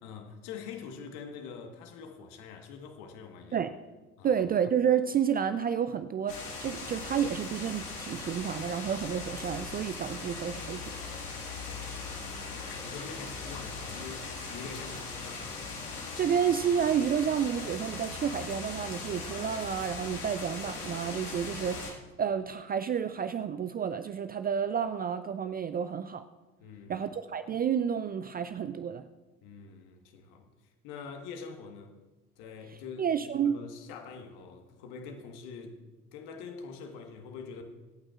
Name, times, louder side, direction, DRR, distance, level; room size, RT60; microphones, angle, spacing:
voice 1, 0.0-3.6 4.2-4.4 11.5-15.5 26.6-27.1 29.4-30.5 30.8-31.9 32.4-35.8 36.1-37.6, left 5 dB, 60° left, 1.6 m, -45 dB
voice 2, 4.2-10.9 16.2-26.2 26.9-29.0 33.0-33.6, right 8 dB, 20° right, 0.4 m, -30 dB
sound 1, 6.3-21.9, left 4 dB, 80° left, 1.9 m, -39 dB
25.0 x 8.8 x 2.5 m
figure-of-eight pair, 60°, 44 cm